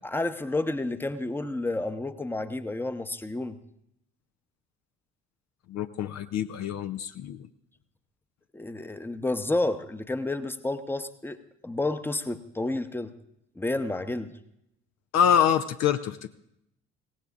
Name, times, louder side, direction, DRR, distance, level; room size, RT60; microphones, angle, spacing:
voice 1, 0.0-3.6 8.5-11.4 11.6-13.1 13.6-14.3, left 2 dB, 5° left, 10 dB, 0.9 m, -30 dB
voice 2, 5.7-7.5 15.1-16.3, left 9 dB, 50° left, 9 dB, 0.7 m, -25 dB
22.5 x 17.5 x 2.5 m, 0.79 s
figure-of-eight pair, 50°, 34 cm